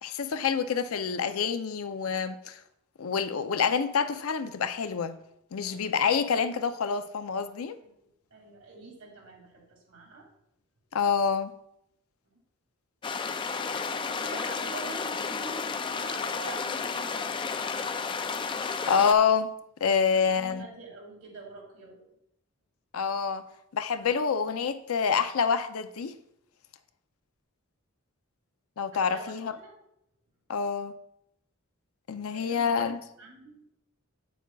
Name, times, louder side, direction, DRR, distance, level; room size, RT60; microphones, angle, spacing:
voice 1, 0.0-2.6 3.0-5.1 5.5-7.8 10.9-11.5 18.9-19.5 19.8-20.7 22.9-23.4 23.7-26.1 28.8-29.5 30.5-30.9 32.1-33.0, left 6 dB, 80° left, 0.5 m, -27 dB
voice 2, 5.6-6.1 8.3-10.3 13.5-18.3 20.0-22.1 24.0-24.3 28.9-29.7 32.3-32.9 33.2-33.6, right 2 dB, 85° right, 2.4 m, -46 dB
sound 1, 13.0-19.1, left 5 dB, 25° left, 0.3 m, -32 dB
9.0 x 7.0 x 2.3 m
head